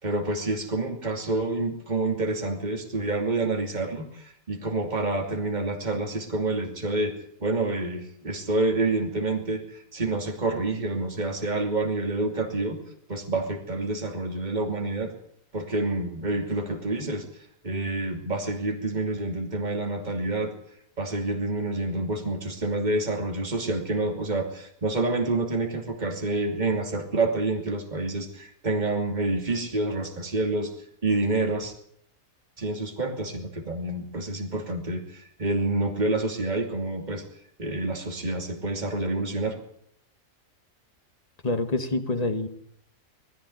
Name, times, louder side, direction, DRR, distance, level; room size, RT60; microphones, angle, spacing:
voice 1, 0.0-7.1 7.4-12.8 13.1-15.1 15.5-17.2 17.6-20.5 21.0-30.7 31.0-31.7 32.6-37.2 37.6-39.6, right 2 dB, 30° right, 3 dB, 2.9 m, -28 dB
voice 2, 41.4-42.5, left 2 dB, 25° left, 9 dB, 1.7 m, -26 dB
20.5 x 14.5 x 9.6 m, 0.68 s
omnidirectional pair, 1.5 m